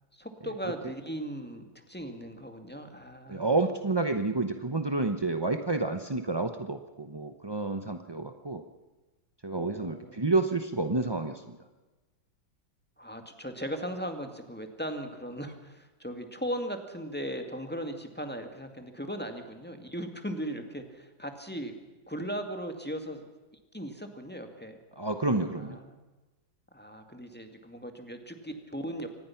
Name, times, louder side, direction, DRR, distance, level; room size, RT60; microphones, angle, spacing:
voice 1, 0.1-3.5 9.5-10.3 13.0-21.8 22.1-23.2 23.7-24.8 25.5-26.0 26.7-29.1, equal, 5° left, 5 dB, 1.9 m, -38 dB
voice 2, 3.3-8.6 9.4-11.6 25.0-25.8, right 3 dB, 40° right, 7 dB, 0.3 m, -29 dB
25.0 x 19.0 x 5.9 m, 1.2 s
omnidirectional pair, 2.1 m